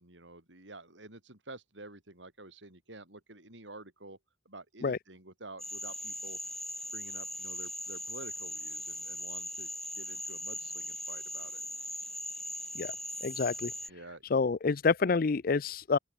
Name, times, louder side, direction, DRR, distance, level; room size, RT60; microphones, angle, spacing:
voice 1, 0.0-4.2 4.5-6.4 6.9-9.7 10.0-11.7 13.9-14.2, right 2 dB, 85° right, 5.8 m, -49 dB
Frog, 5.6-13.9, left 1 dB, ahead, 1.9 m, -39 dB
voice 2, 13.2-13.7 14.3-16.0, left 4 dB, 50° left, 0.5 m, -28 dB
open air
head